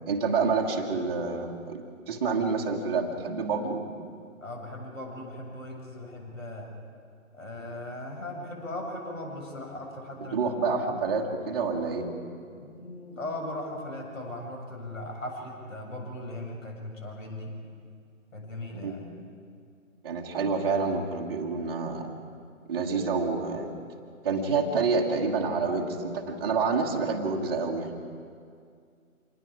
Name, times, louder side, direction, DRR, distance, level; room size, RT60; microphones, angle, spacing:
voice 1, 0.1-3.8 10.3-12.1 18.7-18.9 20.0-22.1 22.7-23.7 24.2-27.9, right 4 dB, 20° right, -3 dB, 1.2 m, -28 dB
voice 2, 4.4-6.7 7.3-10.4 10.9-11.0 12.5-17.5 18.3-19.0, left 1 dB, 65° left, 1 dB, 6.3 m, -38 dB
26.5 x 20.0 x 4.9 m, 2.2 s
figure-of-eight pair, 150°, 42 cm